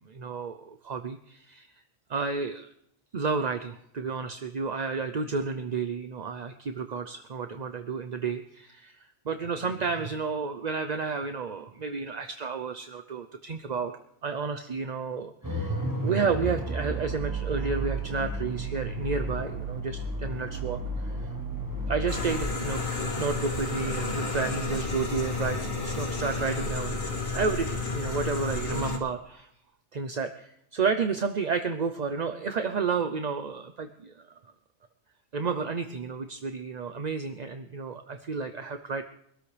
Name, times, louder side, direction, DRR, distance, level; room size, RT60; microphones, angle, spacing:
voice 1, 0.1-1.7 2.1-2.7 3.1-13.9 14.2-21.3 21.9-27.0 27.3-29.5 29.9-34.2 35.3-39.0, right 5 dB, 40° right, 8 dB, 0.7 m, -31 dB
sound 1, 15.4-22.4, right 1 dB, 15° right, 1.3 m, -32 dB
sound 2, 22.1-29.0, left 3 dB, 80° left, 2.8 m, -31 dB
24.0 x 13.0 x 3.4 m, 0.71 s
omnidirectional pair, 1.4 m